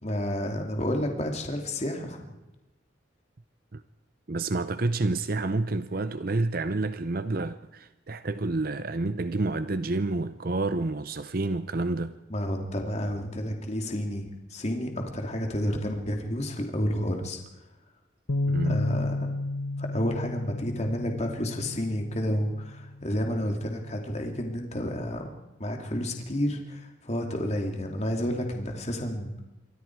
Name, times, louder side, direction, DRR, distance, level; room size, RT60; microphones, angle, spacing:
voice 1, 0.0-2.3 12.3-14.2 14.5-17.4 18.6-19.3 19.8-25.3 25.6-29.4, equal, 35° left, 2.8 m, -30 dB
voice 2, 4.3-12.2 18.5-18.8, right 2 dB, 50° right, 0.7 m, -29 dB
Bass guitar, 18.3-24.5, left 2 dB, 80° left, 1.3 m, -33 dB
27.5 x 23.5 x 4.7 m
head